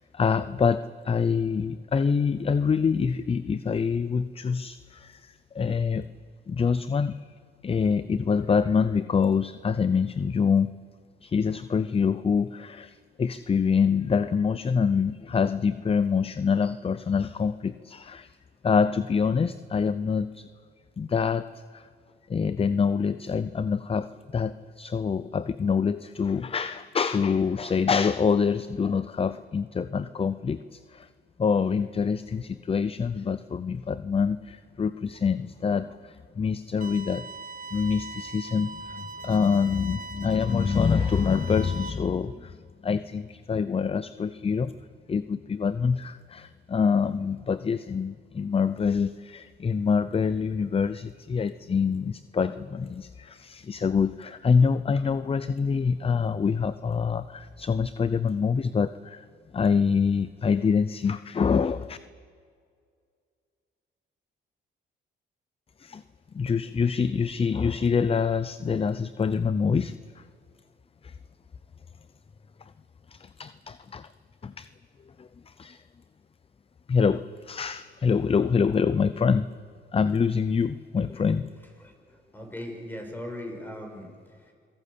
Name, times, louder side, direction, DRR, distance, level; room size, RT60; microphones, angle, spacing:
voice 1, 0.1-6.1 6.5-7.2 7.6-10.7 11.2-18.3 18.6-20.5 21.0-21.9 22.3-31.1 31.4-37.3 37.7-42.6 42.8-44.7 45.1-59.2 59.5-62.0 65.8-66.0 66.3-70.2 71.0-71.1 73.1-74.1 74.4-74.7 75.2-75.8 76.9-79.5 79.9-81.5, left 6 dB, 30° left, 15 dB, 0.6 m, -26 dB
sound 1, 36.8-41.9, right 3 dB, 40° right, 1.9 m, -41 dB
voice 2, 81.0-84.5, left 1 dB, 10° left, 2 dB, 6.6 m, -40 dB
25.5 x 18.0 x 8.6 m, 2.1 s
cardioid pair, 90°, 20 cm